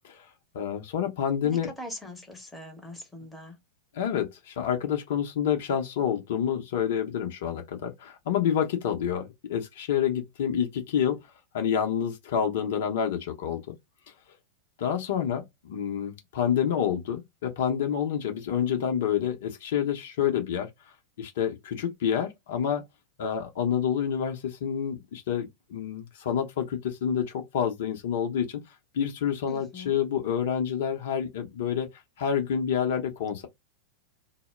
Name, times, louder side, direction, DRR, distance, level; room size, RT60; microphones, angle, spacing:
voice 1, 0.5-1.7 3.9-11.2 11.5-13.8 14.8-20.7 21.2-22.8 23.2-28.6 28.9-31.9 32.2-33.5, left 8 dB, 55° left, 0.6 m, -28 dB
voice 2, 1.4-3.6 29.5-30.0, left 1 dB, 5° left, 0.8 m, -41 dB
2.1 x 2.0 x 3.2 m
figure-of-eight pair, 90°, 0 cm